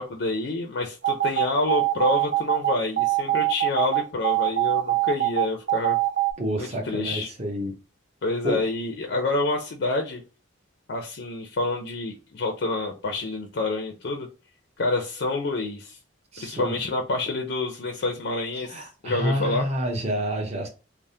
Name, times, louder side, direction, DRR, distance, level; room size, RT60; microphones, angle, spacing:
voice 1, 0.0-6.0 6.6-7.3 8.2-10.2 10.9-14.3 14.8-16.0 16.4-19.7, left 2 dB, 60° left, 3 dB, 0.5 m, -28 dB
sound 1, 1.0-6.3, right 16 dB, 60° right, 0.3 m, -23 dB
voice 2, 6.4-7.7 8.4-8.6 16.3-16.8 18.6-20.7, equal, 30° right, 2 dB, 0.7 m, -28 dB
3.3 x 2.0 x 2.6 m, 0.33 s
head